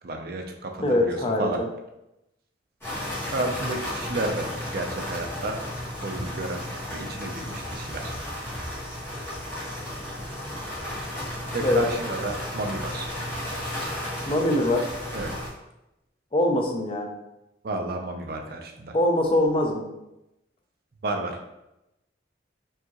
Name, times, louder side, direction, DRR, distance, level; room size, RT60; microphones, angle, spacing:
voice 1, 0.0-1.6 3.3-5.6 6.0-6.7 6.9-8.1 11.5-13.1 15.1-15.4 17.6-19.0 21.0-21.5, right 2 dB, 55° right, 3 dB, 0.5 m, -31 dB
voice 2, 0.8-1.7 11.6-11.8 14.3-14.9 16.3-17.1 18.9-19.9, left 1 dB, 30° left, 2 dB, 0.5 m, -23 dB
sound 1, 2.8-15.5, left 1 dB, 15° left, 1.4 m, -33 dB
4.5 x 2.8 x 2.9 m, 0.90 s
head